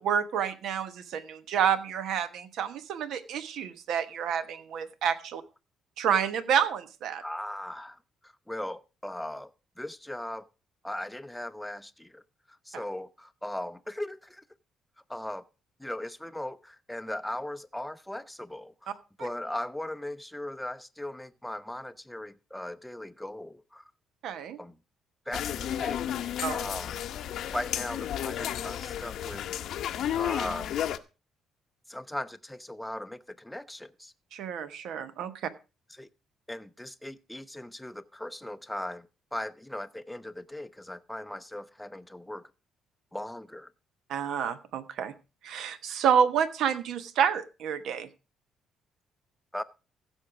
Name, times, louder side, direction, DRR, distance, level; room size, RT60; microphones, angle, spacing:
voice 1, 0.0-5.4 6.0-7.2 12.7-12.8 19.2-19.3 24.2-24.6 26.4-26.5 34.3-35.5 44.1-45.1 45.4-48.1, right 8 dB, 70° right, 1.1 m, -29 dB
voice 2, 7.2-9.5 9.8-10.5 10.8-12.2 12.5-14.4 15.1-15.4 15.8-23.8 24.6-24.8 25.3-27.0 27.5-29.5 30.1-30.7 31.9-34.1 35.9-36.1 36.5-42.5 43.1-43.7 49.5-49.6, left 1 dB, 5° left, 0.6 m, -38 dB
sound 1, 25.3-31.0, left 10 dB, 70° left, 0.7 m, -32 dB
15.5 x 6.5 x 4.8 m
cardioid pair, 125°, 0 cm